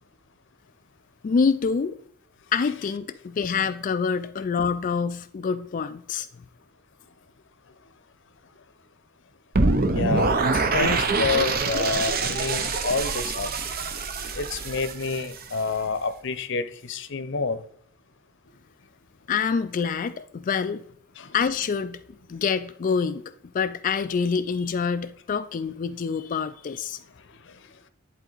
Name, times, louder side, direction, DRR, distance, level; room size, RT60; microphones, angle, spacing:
voice 1, 1.2-2.0 2.5-6.3 19.3-20.8 21.3-22.0 22.3-23.2 23.5-27.0, left 5 dB, 40° left, 0.3 m, -26 dB
sound 1, 9.5-15.6, right 3 dB, 45° right, 0.7 m, -25 dB
voice 2, 9.8-13.5 14.1-17.6 21.2-21.3 22.3-22.4 27.0-27.8, left 4 dB, 60° left, 0.8 m, -29 dB
10.5 x 3.9 x 4.0 m
head